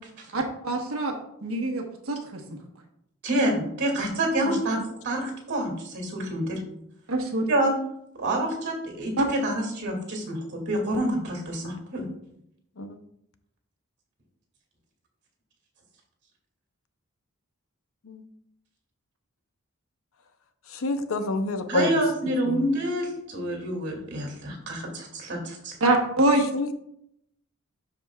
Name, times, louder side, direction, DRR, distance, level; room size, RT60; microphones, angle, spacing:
voice 1, 0.3-1.1 1.4-2.4 7.1-7.5 9.2-9.3 25.8-26.4, right 2 dB, 70° right, 1 dB, 1.3 m, -24 dB
voice 2, 3.2-4.8 5.0-6.6 7.5-7.7 8.2-12.0 21.7-25.8, right 1 dB, 50° right, 1 dB, 2.4 m, -27 dB
voice 3, 20.7-22.0 22.5-22.7 26.5-26.7, left 2 dB, 65° left, 8 dB, 0.7 m, -28 dB
12.5 x 5.0 x 2.4 m, 0.76 s
head